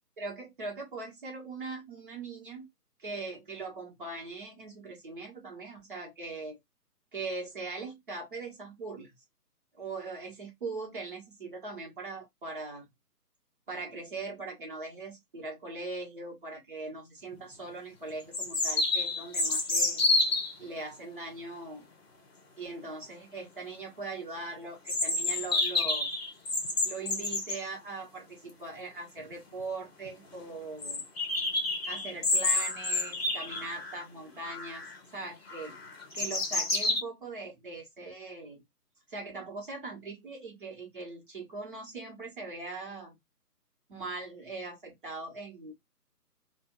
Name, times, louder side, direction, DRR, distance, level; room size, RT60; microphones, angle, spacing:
voice 1, 0.2-2.7 3.0-6.6 7.1-9.1 9.8-12.9 13.7-20.0 20.6-21.8 22.6-26.1 26.8-31.1 31.8-34.8 35.1-35.8 36.1-38.6 39.1-43.2 43.9-45.7, right 3 dB, 35° right, 1.4 m, -40 dB
sound 1, 17.3-17.4 18.3-20.5 24.9-27.6 29.2-29.3 29.6-29.7 30.1-30.2 30.8-34.0 34.4-35.0 35.5-37.0, left 2 dB, 40° left, 0.9 m, -29 dB
3.4 x 2.5 x 3.0 m
figure-of-eight pair, 150°, 48 cm